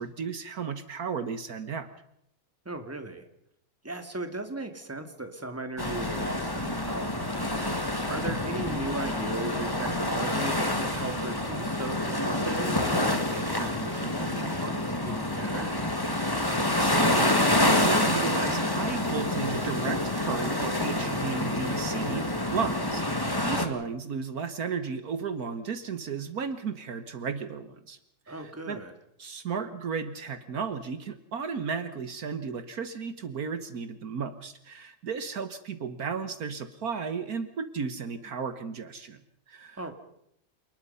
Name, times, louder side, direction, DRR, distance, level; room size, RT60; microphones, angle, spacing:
voice 1, 0.0-1.9 16.6-28.0 28.3-28.8 29.2-39.2 39.5-39.8, right 6 dB, 65° right, 11 dB, 1.6 m, -34 dB
voice 2, 2.7-3.2 3.8-7.7 8.1-15.8 28.3-28.9 39.8-39.9, right 2 dB, 10° right, 7 dB, 2.1 m, -37 dB
sound 1, 5.8-23.7, left 1 dB, 15° left, 2.0 m, -27 dB
28.0 x 20.0 x 5.5 m, 0.74 s
omnidirectional pair, 1.8 m